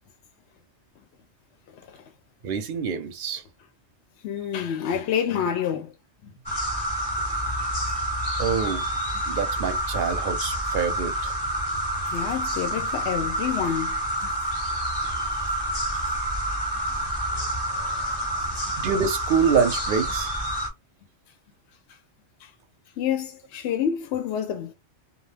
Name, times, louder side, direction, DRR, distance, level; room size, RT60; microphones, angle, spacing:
voice 1, 2.4-3.4 8.4-8.8 9.3-11.3 18.8-20.3, right 6 dB, 55° right, 0.7 m, -26 dB
voice 2, 4.2-5.9 6.5-6.6 12.1-14.0 22.4-22.5 23.0-24.7, left 8 dB, 70° left, 0.8 m, -27 dB
sound 1, 6.5-20.7, right 1 dB, 25° left, 0.8 m, -28 dB
2.4 x 2.1 x 3.2 m
omnidirectional pair, 1.2 m